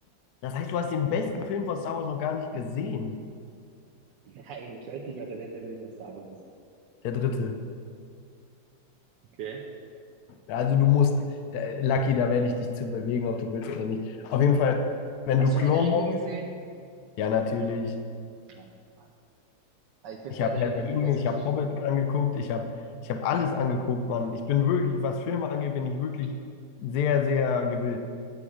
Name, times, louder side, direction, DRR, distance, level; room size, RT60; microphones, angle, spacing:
voice 1, 0.4-3.2 7.0-7.6 10.5-11.2 11.5-14.8 15.3-16.0 17.2-18.0 20.3-22.7 23.0-26.3 26.8-28.0, left 6 dB, 65° left, 6 dB, 1.0 m, -26 dB
voice 2, 4.2-6.3 9.4-9.6 15.4-16.5 18.5-18.7 19.0-19.1 20.0-21.1 21.3-21.5, right 5 dB, 75° right, -2 dB, 1.4 m, -38 dB
8.7 x 8.5 x 4.8 m, 2.3 s
omnidirectional pair, 1.9 m